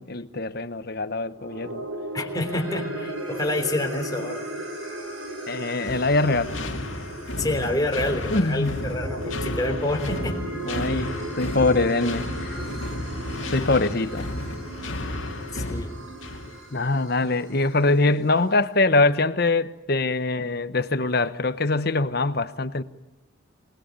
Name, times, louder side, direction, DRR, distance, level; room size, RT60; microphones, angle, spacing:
voice 1, 0.0-1.8 5.5-6.5 8.3-8.8 10.6-12.6 13.5-14.3 16.7-22.8, left 2 dB, 50° left, 1.1 m, -23 dB
sound 1, 1.3-17.8, right 1 dB, 80° right, 5.9 m, -36 dB
voice 2, 2.1-4.5 7.4-10.4 15.5-15.9, left 1 dB, 20° left, 3.4 m, -28 dB
sound 2, 5.9-16.6, left 1 dB, 65° left, 2.4 m, -33 dB
27.0 x 20.0 x 9.0 m
head